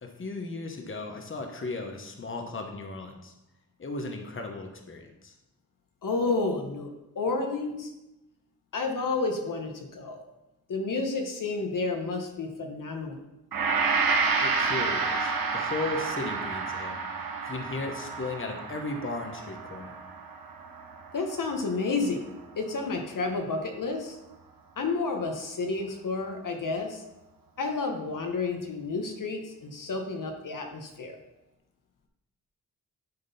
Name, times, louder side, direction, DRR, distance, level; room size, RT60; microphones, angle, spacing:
voice 1, 0.0-3.3 3.8-5.3 14.4-17.0 17.4-20.0, left 3 dB, 35° left, 4 dB, 1.1 m, -36 dB
voice 2, 6.0-7.9 8.7-10.2 10.7-13.2 21.1-22.2 22.6-24.2 24.8-27.0 27.6-31.2, left 3 dB, 60° left, 3 dB, 1.1 m, -30 dB
Gong, 13.5-21.9 22.3-22.4, right 4 dB, 70° right, 1.0 m, -30 dB
10.5 x 3.7 x 4.1 m, 0.94 s
cardioid pair, 70°, 35 cm